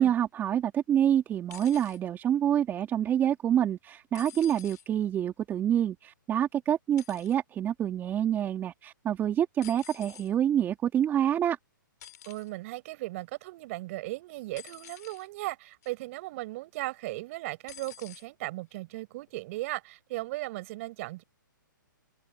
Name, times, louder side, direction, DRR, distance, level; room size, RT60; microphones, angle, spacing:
voice 1, 0.0-11.6, right 10 dB, 20° right, 2.3 m, -27 dB
sound 1, 1.5-2.0 4.1-4.9 7.0-7.4 9.6-10.3 12.0-12.5 14.6-15.3 15.8-16.1 17.7-18.3 19.3-19.4, left 11 dB, 55° left, 3.4 m, -49 dB
voice 2, 12.3-21.2, right 20 dB, 40° right, 5.7 m, -37 dB
hypercardioid pair, 135°, 11 cm